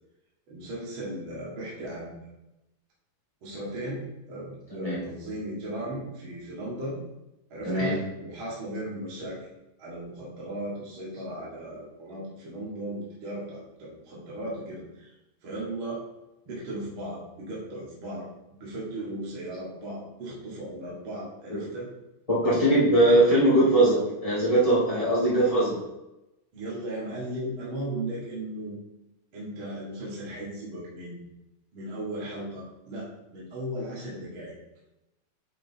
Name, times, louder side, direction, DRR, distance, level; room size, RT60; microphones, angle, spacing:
voice 1, 0.5-2.2 3.4-7.0 7.5-9.4 9.8-15.1 15.4-16.0 16.4-21.9 23.0-23.3 26.5-28.8 29.3-31.2 31.7-34.5, right 1 dB, 45° right, -6 dB, 2.0 m, -36 dB
voice 2, 4.7-5.0 7.6-8.0 21.5-21.7 22.3-25.8, right 1 dB, 30° left, -8 dB, 0.6 m, -21 dB
9.2 x 6.7 x 2.9 m, 0.95 s
omnidirectional pair, 4.4 m